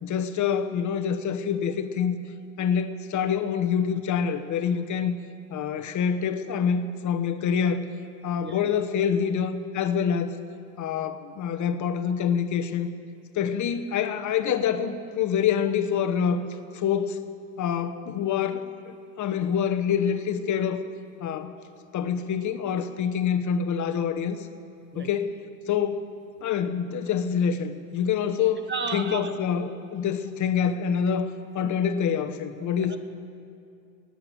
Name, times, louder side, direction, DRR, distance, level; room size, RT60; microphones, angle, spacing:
voice 1, 0.0-2.2 2.6-5.2 5.5-7.9 8.2-10.3 10.8-12.9 13.3-16.5 16.7-17.2 17.6-20.8 21.2-21.5 21.9-24.4 24.9-25.4 25.7-26.1 26.4-31.3 31.5-33.0, left 7 dB, 40° left, 9 dB, 1.1 m, -26 dB
voice 2, 8.4-8.8 24.9-25.1 28.7-29.3 31.6-31.7 32.6-33.0, right 4 dB, 25° right, 9 dB, 0.8 m, -34 dB
15.0 x 9.9 x 9.1 m, 2.4 s
supercardioid pair, 110°, 48 cm